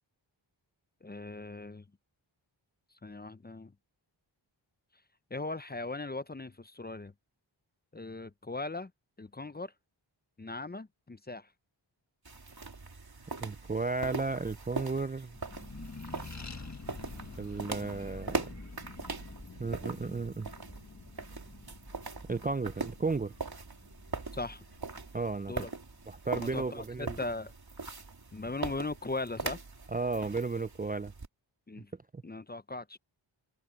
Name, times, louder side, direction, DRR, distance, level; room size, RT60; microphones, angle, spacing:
voice 1, 1.0-1.8 3.0-3.7 5.3-7.1 7.9-8.9 9.2-9.7 10.4-11.5 24.3-24.6 25.5-25.7 26.3-27.5 28.3-29.6 31.7-31.9 32.2-33.0, left 3 dB, 20° left, 0.6 m, -39 dB
sound 1, 12.3-31.3, right 4 dB, 50° right, 3.6 m, -41 dB
voice 2, 13.4-15.3 17.4-18.4 19.6-20.5 22.3-23.3 25.1-25.5 26.1-27.2 29.9-31.1 32.1-32.2, right 3 dB, 20° right, 0.4 m, -33 dB
Accelerating revving vroom, 15.3-26.2, left 3 dB, 35° left, 1.7 m, -48 dB
open air
wide cardioid pair, 70°, 47 cm